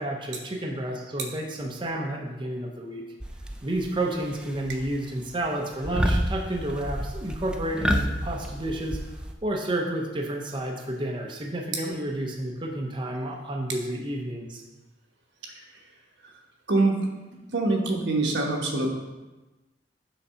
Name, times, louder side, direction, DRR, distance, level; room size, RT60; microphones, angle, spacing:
voice 1, 0.0-3.0 3.6-9.0 9.4-14.6, right 1 dB, 25° right, 0 dB, 0.7 m, -30 dB
sound 1, 3.2-3.9 4.2-4.9 5.2-5.5 5.8-9.3, equal, 5° right, 0.4 m, -29 dB
voice 2, 16.7-17.1 17.5-18.9, right 2 dB, 80° right, 0 dB, 1.2 m, -24 dB
6.8 x 4.0 x 5.6 m, 1.1 s
head